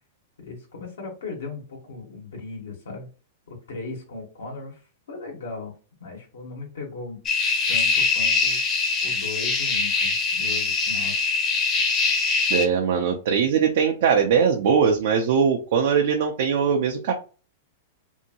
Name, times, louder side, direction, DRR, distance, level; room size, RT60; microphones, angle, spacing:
voice 1, 0.4-3.1 3.5-5.7 6.0-7.2 7.7-8.6 9.0-11.2, left 3 dB, 90° left, -1 dB, 1.2 m, -37 dB
sound 1, 7.3-12.7, left 4 dB, 30° left, 0.6 m, -23 dB
voice 2, 12.5-17.1, right 6 dB, 65° right, 2 dB, 0.5 m, -21 dB
2.7 x 2.6 x 2.8 m, 0.35 s
hypercardioid pair, 130°, 0 cm